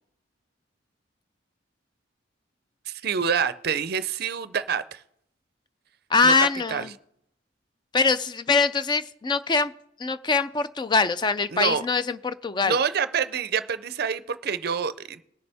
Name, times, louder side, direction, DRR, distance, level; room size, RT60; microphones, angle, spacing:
voice 1, 2.9-5.0 6.2-6.3 6.7-6.9 11.5-11.8 12.6-15.2, right 6 dB, 50° right, 13 dB, 0.5 m, -27 dB
voice 2, 6.1-6.9 7.9-9.7 10.0-12.8, left 4 dB, 20° left, 13 dB, 0.4 m, -23 dB
20.0 x 6.8 x 3.4 m, 0.75 s
head